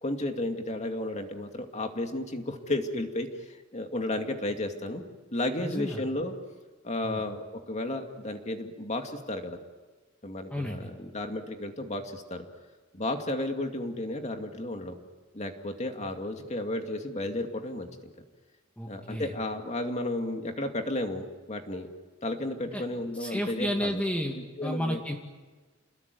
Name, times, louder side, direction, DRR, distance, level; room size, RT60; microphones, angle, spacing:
voice 1, 0.0-5.0 5.3-6.3 6.8-9.6 10.2-12.5 12.9-15.0 15.3-18.1 18.8-21.9 22.2-24.0 24.3-25.0, left 1 dB, 35° left, 4 dB, 2.4 m, -33 dB
voice 2, 5.6-6.0 7.0-7.2 10.5-10.9 18.8-19.3 22.7-22.8 23.2-24.3 24.6-25.2, equal, 5° left, 1 dB, 2.2 m, -31 dB
29.0 x 21.0 x 9.5 m, 1.3 s
head